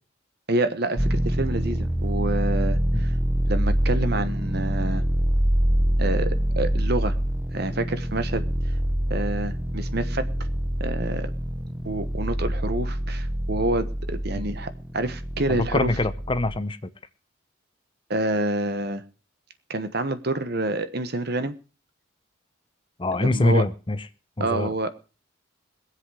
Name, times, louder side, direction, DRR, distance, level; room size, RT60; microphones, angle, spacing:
voice 1, 0.5-3.1 3.5-5.0 6.0-7.1 7.5-8.4 9.1-10.2 10.8-11.3 11.8-15.9 18.1-19.0 19.7-21.5 23.2-23.6 24.4-24.9, right 2 dB, 50° right, 11 dB, 1.2 m, -27 dB
sound 1, 1.0-16.6, equal, 5° right, 0.8 m, -25 dB
voice 2, 15.5-16.8 23.0-24.0 24.4-24.7, left 2 dB, 25° left, 12 dB, 0.8 m, -24 dB
21.0 x 7.9 x 4.9 m, 0.35 s
head